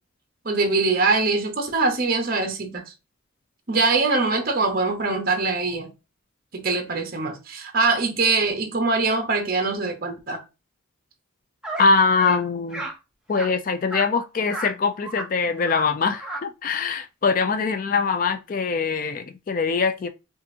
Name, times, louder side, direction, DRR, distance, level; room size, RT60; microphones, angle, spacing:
voice 1, 0.4-2.8 3.7-5.9 6.5-10.4, right 3 dB, 45° right, 1.0 m, -23 dB
sound 1, 11.6-11.9 12.1-12.4 12.7-12.9 13.3-13.5 13.9-14.1 14.5-14.7 15.0-15.3 15.6-15.8 16.1-16.4, right 2 dB, 5° right, 0.7 m, -32 dB
voice 2, 11.8-12.8 13.3-20.1, left 4 dB, 40° left, 0.3 m, -23 dB
5.1 x 2.5 x 2.7 m
head